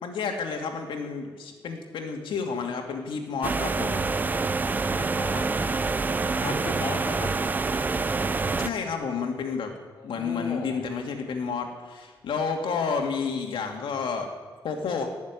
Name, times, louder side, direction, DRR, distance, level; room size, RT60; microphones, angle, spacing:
voice 1, 0.0-4.0 6.4-6.5 8.6-9.7 10.0-14.3 14.6-15.1, left 5 dB, 75° left, 2 dB, 2.4 m, -30 dB
sound 1, 3.4-8.7, right 3 dB, 20° right, 0.5 m, -26 dB
voice 2, 4.9-5.7 6.2-7.3 10.0-10.8, left 4 dB, 50° left, 0 dB, 1.9 m, -37 dB
18.0 x 7.2 x 9.8 m, 1.5 s
wide cardioid pair, 170°, 9 cm